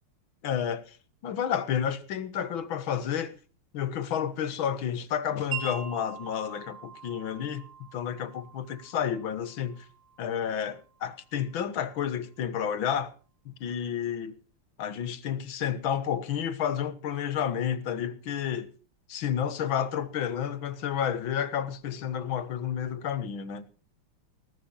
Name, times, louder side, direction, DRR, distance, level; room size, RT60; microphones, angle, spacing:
voice 1, 0.4-1.0 1.2-3.3 3.7-7.6 7.9-9.9 10.2-13.1 13.5-14.3 14.8-18.7 19.1-23.7, left 8 dB, 70° left, 2.0 m, -30 dB
Wind chime, 5.5-11.6, right 8 dB, 40° right, 4.6 m, -43 dB
19.0 x 9.5 x 5.3 m
omnidirectional pair, 2.3 m